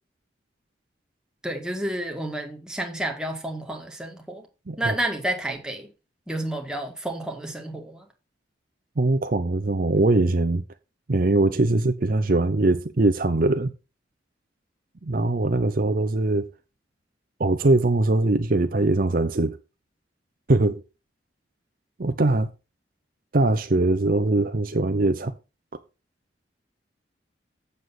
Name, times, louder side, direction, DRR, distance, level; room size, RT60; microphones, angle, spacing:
voice 1, 1.4-4.5 4.8-5.9 6.3-8.1, right 1 dB, 5° right, 2.0 m, -30 dB
voice 2, 9.0-10.6 11.1-13.7 15.0-16.5 17.4-19.6 20.5-20.8 22.0-22.5 23.3-25.3, right 2 dB, 50° right, 0.7 m, -21 dB
8.1 x 7.3 x 5.9 m
head